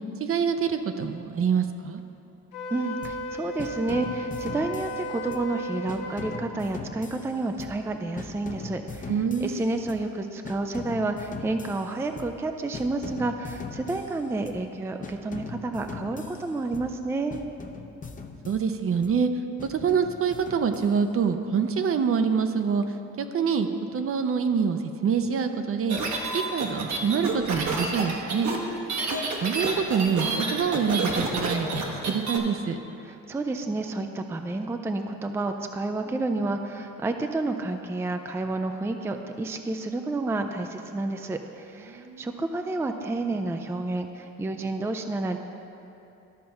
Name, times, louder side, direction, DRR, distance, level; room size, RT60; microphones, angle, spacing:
voice 1, 0.2-2.0 9.1-9.7 18.4-19.3 19.6-22.8 23.2-26.0 26.3-28.5 29.4-32.8 41.9-42.3, right 6 dB, 45° right, 8 dB, 0.6 m, -26 dB
Wind instrument woodwind instrument, 2.5-6.4, equal, 80° left, 1.1 m, -35 dB
voice 2, 2.7-9.1 9.4-17.4 33.0-45.4, right 2 dB, 10° right, 6 dB, 0.4 m, -30 dB
sound 1, 3.0-3.3 3.6-5.5 5.9-10.1 10.4-12.5 12.7-14.7 15.0-17.0 17.3-19.2 19.6-21.3, left 4 dB, 25° left, 0.7 m, -41 dB
sound 2, 25.9-32.4, right 3 dB, 65° right, 1.2 m, -29 dB
12.5 x 4.1 x 5.7 m, 2.9 s
cardioid pair, 90°, 30 cm